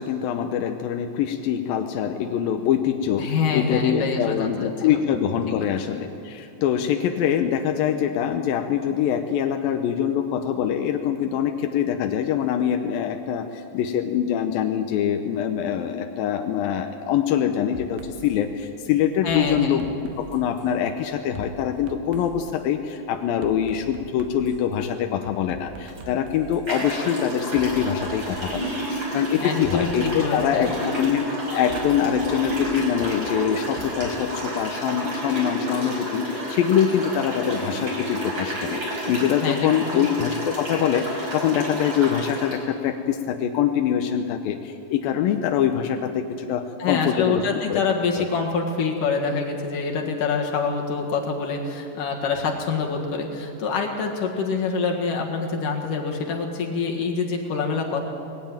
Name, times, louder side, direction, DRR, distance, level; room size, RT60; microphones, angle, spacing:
voice 1, 0.0-19.9 20.2-47.4 47.7-47.8 48.2-48.3, left 9 dB, 75° left, 5 dB, 2.3 m, -24 dB
voice 2, 3.2-4.7 5.5-5.7 19.2-19.8 29.4-30.7 39.4-40.1 46.8-58.0, left 5 dB, 60° left, 1 dB, 3.0 m, -26 dB
sound 1, 17.7-18.4 19.3-20.7 21.3-22.5 23.4-24.7 25.2-26.7 27.6-28.9 29.6-30.8 31.7-34.2, right 7 dB, 75° right, 3.1 m, -43 dB
sound 2, 25.9-26.0 26.6-42.6, equal, 25° right, 5.6 m, -30 dB
20.0 x 16.0 x 9.0 m, 2.9 s
omnidirectional pair, 4.8 m